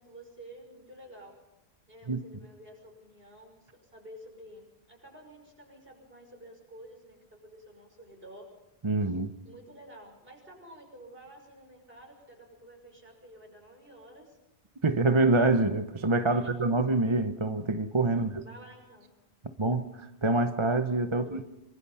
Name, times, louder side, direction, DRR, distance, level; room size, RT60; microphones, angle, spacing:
voice 1, 0.0-1.4 1.9-8.5 9.0-9.2 9.4-14.4 16.2-16.5 16.9-17.0 18.1-19.2 21.1-21.4, right 1 dB, 60° right, 6.3 m, -51 dB
voice 2, 8.8-9.3 14.8-18.4 19.6-21.4, right 2 dB, 30° right, 0.9 m, -26 dB
25.5 x 23.5 x 5.7 m
omnidirectional pair, 1.1 m